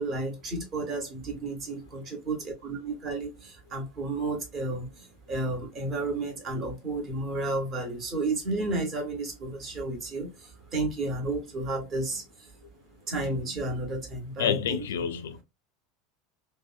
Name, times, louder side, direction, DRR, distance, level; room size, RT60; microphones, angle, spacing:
voice 1, 0.0-12.5 13.1-14.8, right 2 dB, 35° right, 1.0 m, -32 dB
voice 2, 14.4-15.4, left 8 dB, 65° left, 0.3 m, -28 dB
2.8 x 2.0 x 2.3 m
figure-of-eight pair, 75°, 0 cm